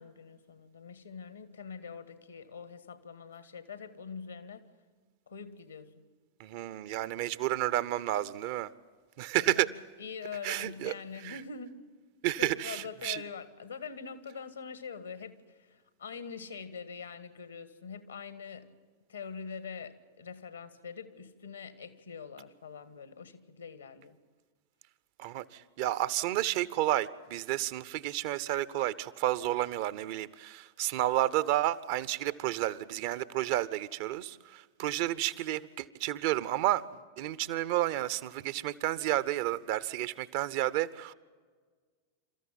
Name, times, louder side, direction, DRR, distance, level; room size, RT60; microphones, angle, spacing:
voice 1, 0.0-4.7 5.3-6.0 9.4-9.6 10.0-11.7 12.4-18.7 19.1-24.2, left 6 dB, 75° left, 12 dB, 1.6 m, -44 dB
voice 2, 6.4-8.7 9.2-9.7 10.4-10.9 11.2-11.4 12.2-13.2 25.2-36.8 37.2-41.1, right 14 dB, 50° right, 17 dB, 0.8 m, -31 dB
28.0 x 14.0 x 9.0 m, 1.5 s
figure-of-eight pair, 90°, 0 cm